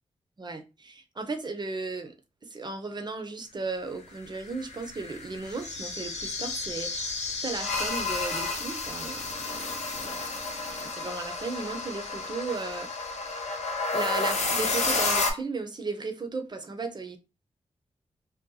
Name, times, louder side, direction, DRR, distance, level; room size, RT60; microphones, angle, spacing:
voice 1, 0.4-2.1 2.4-12.9 13.9-17.2, right 3 dB, 35° right, 0.6 m, -36 dB
sound 1, 4.4-15.3, left 3 dB, 65° left, 0.9 m, -31 dB
2.7 x 2.2 x 3.7 m
cardioid pair, 70°, 12 cm